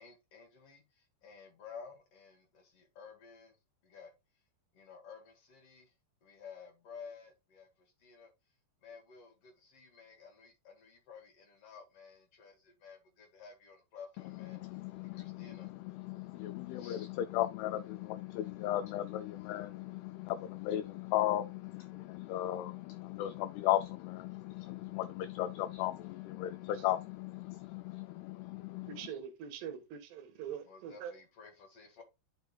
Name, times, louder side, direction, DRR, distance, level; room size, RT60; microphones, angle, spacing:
voice 1, 0.0-3.6 3.8-4.1 4.7-5.9 6.2-8.3 8.8-14.6 15.0-15.7 16.7-17.1 30.6-32.0, left 6 dB, 60° left, 1.6 m, -53 dB
voice 2, 14.3-29.1, left 14 dB, 90° left, 2.3 m, -36 dB
voice 3, 28.9-31.1, right 8 dB, 75° right, 3.1 m, -43 dB
9.8 x 5.9 x 2.3 m
omnidirectional pair, 5.1 m